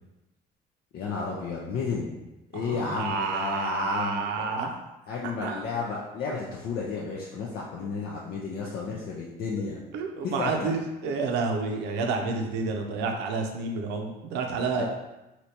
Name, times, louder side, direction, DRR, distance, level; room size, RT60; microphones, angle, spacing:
voice 1, 0.9-2.2 2.5-4.4 5.1-9.8 10.2-10.8 14.7-14.8, left 4 dB, 65° left, -4 dB, 0.5 m, -32 dB
voice 2, 2.5-4.8 5.2-5.5 9.6-14.8, right 4 dB, 85° right, 3 dB, 0.5 m, -30 dB
3.2 x 2.7 x 2.8 m, 0.98 s
cardioid pair, 110°, 17 cm